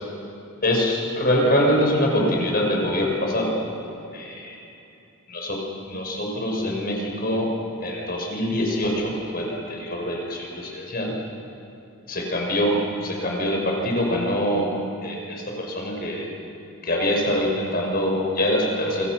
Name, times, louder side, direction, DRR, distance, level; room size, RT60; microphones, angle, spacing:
voice 1, 0.6-3.5 4.1-4.6 5.3-7.5 7.8-11.1 12.1-14.7 15.0-16.3 16.8-19.1, equal, 45° left, 0 dB, 5.7 m, -24 dB
28.5 x 26.5 x 6.3 m, 2.8 s
head